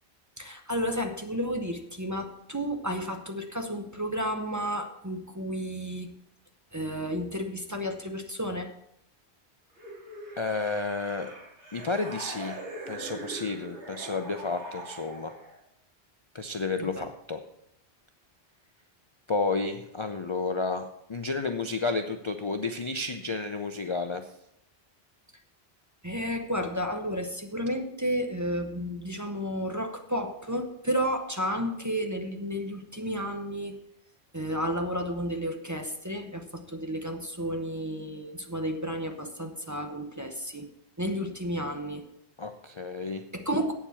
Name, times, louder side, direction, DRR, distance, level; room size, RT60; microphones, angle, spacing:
voice 1, 0.4-6.1 6.7-8.7 16.8-17.0 26.0-33.8 34.3-40.7 41.0-42.0 43.3-43.7, equal, 20° right, 4 dB, 0.7 m, -32 dB
sound 1, 9.8-15.6, right 1 dB, 90° right, 2.7 m, -42 dB
voice 2, 10.4-11.3 11.7-12.6 12.9-15.3 16.3-17.4 19.3-24.3 42.4-43.2, left 3 dB, 35° left, 6 dB, 0.5 m, -31 dB
8.5 x 7.3 x 7.0 m, 0.80 s
omnidirectional pair, 1.1 m